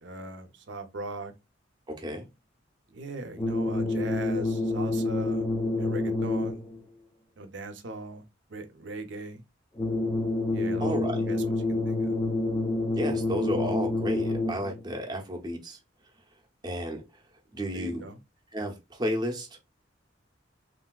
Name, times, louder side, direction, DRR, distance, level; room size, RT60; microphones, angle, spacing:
voice 1, 0.0-1.3 2.9-5.5 5.8-6.6 7.4-8.2 8.5-9.4 10.5-12.2 17.7-18.2, right 2 dB, 65° right, 0.6 m, -39 dB
voice 2, 1.9-2.3 10.8-11.3 12.9-15.8 16.6-17.0 17.5-18.1 18.5-19.6, equal, 20° right, 0.7 m, -32 dB
sound 1, 3.4-6.8 9.8-14.8, left 2 dB, 15° left, 0.4 m, -28 dB
3.4 x 2.6 x 2.3 m
head